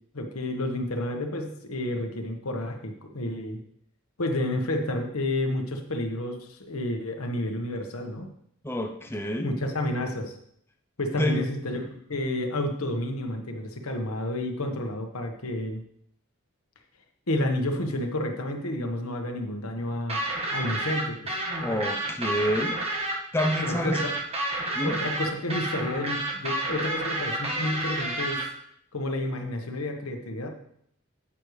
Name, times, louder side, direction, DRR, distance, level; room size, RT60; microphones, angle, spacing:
voice 1, 0.1-3.6 4.2-8.3 9.4-10.3 11.0-15.8 17.3-20.2 20.5-21.4 23.6-24.1 24.8-28.4 28.9-30.5, left 1 dB, 85° left, 4 dB, 1.4 m, -30 dB
voice 2, 8.6-9.5 11.2-11.4 11.7-11.8 21.6-22.8 23.3-24.0 24.7-25.0, left 1 dB, 10° left, 3 dB, 0.6 m, -28 dB
sound 1, 20.1-28.4, right 1 dB, 30° right, 1.5 m, -30 dB
9.8 x 8.6 x 3.2 m, 0.69 s
head